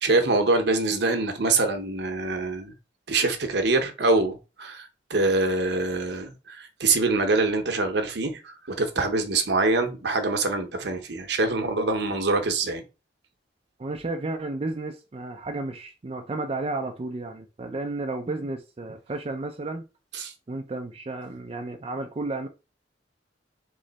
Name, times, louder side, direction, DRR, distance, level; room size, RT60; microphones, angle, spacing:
voice 1, 0.0-2.7 3.1-12.8 20.2-20.3, right 3 dB, 65° right, 0.8 m, -24 dB
voice 2, 13.8-19.9 20.5-22.5, right 2 dB, 35° right, 0.4 m, -32 dB
3.8 x 3.1 x 3.9 m
head